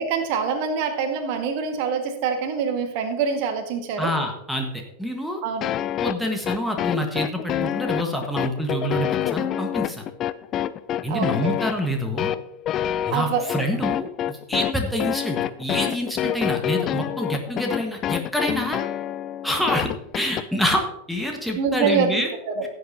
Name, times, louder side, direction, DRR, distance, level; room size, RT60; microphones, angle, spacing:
voice 1, 0.0-4.1 5.4-5.7 11.1-11.6 13.1-13.4 21.6-22.7, right 6 dB, 45° right, 6 dB, 1.7 m, -25 dB
voice 2, 4.0-5.4 6.0-10.1 11.0-12.3 13.0-18.8 19.4-19.9 20.1-22.3, equal, ahead, 1 dB, 1.5 m, -27 dB
sound 1, 5.6-20.5, left 11 dB, 30° left, 0.4 m, -27 dB
16.5 x 8.1 x 2.8 m, 0.82 s
figure-of-eight pair, 90°, 0 cm